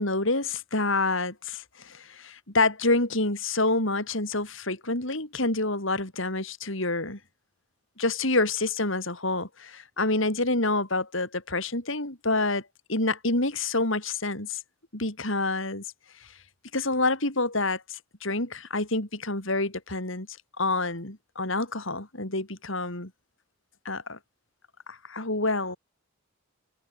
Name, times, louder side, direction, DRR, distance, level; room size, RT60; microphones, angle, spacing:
voice 1, 0.0-7.2 8.0-12.6 12.9-14.6 14.9-15.8 16.7-20.3 20.6-23.1 23.8-24.2 24.9-25.8, left 2 dB, 60° left, 4.3 m, -27 dB
head